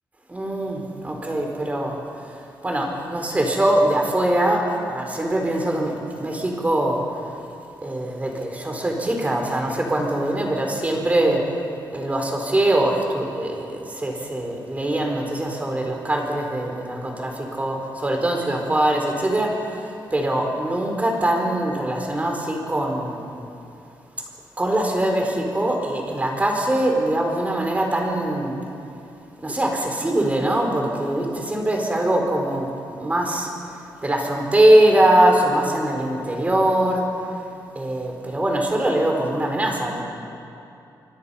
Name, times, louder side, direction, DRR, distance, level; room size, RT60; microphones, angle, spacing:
voice 1, 0.3-2.0 2.6-7.0 7.8-11.5 11.9-23.3 24.6-28.6 29.4-32.7 33.0-33.5 34.0-37.1 37.7-40.0, right 1 dB, 20° right, 1 dB, 4.1 m, -22 dB
26.0 x 24.5 x 5.6 m, 2.7 s
wide cardioid pair, 120°, 8 cm